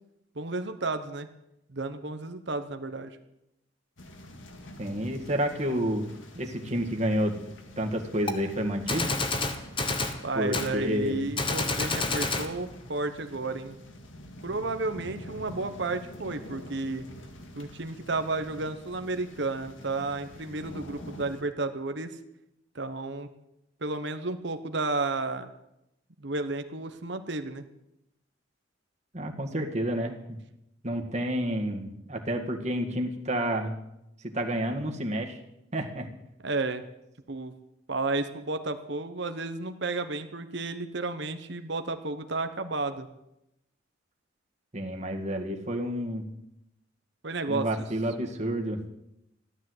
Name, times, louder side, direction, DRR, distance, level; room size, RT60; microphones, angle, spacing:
voice 1, 0.3-1.3 1.7-3.2 10.2-13.8 14.4-17.0 17.6-22.2 22.7-23.3 23.8-25.5 26.2-27.6 36.4-36.8 37.3-37.5 37.9-43.1 47.2-47.7, right 3 dB, 60° right, 8 dB, 1.0 m, -32 dB
sound 1, 4.0-21.4, equal, 70° left, 2.0 m, -46 dB
voice 2, 4.8-7.4 7.8-9.1 10.4-11.3 29.1-30.2 30.8-33.8 34.3-35.4 35.7-36.1 44.7-46.3 47.5-48.8, equal, 35° right, 2 dB, 1.9 m, -29 dB
Gunshot gunfire, 8.3-8.4 8.9-10.2 10.5-10.7 11.4-12.5, left 3 dB, 25° left, 1.3 m, -28 dB
14.5 x 12.5 x 8.0 m, 0.86 s
head